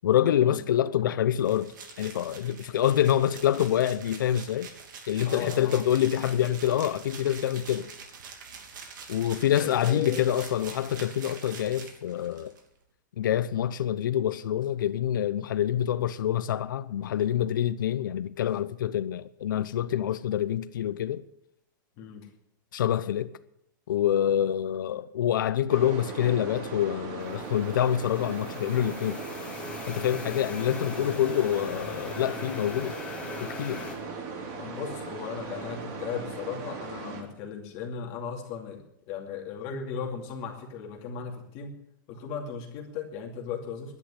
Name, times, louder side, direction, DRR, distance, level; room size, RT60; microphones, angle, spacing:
voice 1, 0.0-4.7 5.1-7.9 9.1-12.5 13.2-21.2 22.7-23.3 23.9-29.2 29.9-33.0 33.4-33.9, left 10 dB, 80° left, 0.7 m, -26 dB
sound 1, 1.4-12.6, right 5 dB, 75° right, 3.0 m, -45 dB
voice 2, 5.2-5.9 9.6-10.3 22.0-22.3 34.6-41.8 42.1-44.0, left 6 dB, 35° left, 2.5 m, -37 dB
sound 2, 25.7-37.2, right 4 dB, 35° right, 3.0 m, -38 dB
sound 3, 27.2-34.0, left 4 dB, 10° left, 1.4 m, -41 dB
11.0 x 10.5 x 9.9 m
supercardioid pair, 165°, 11 cm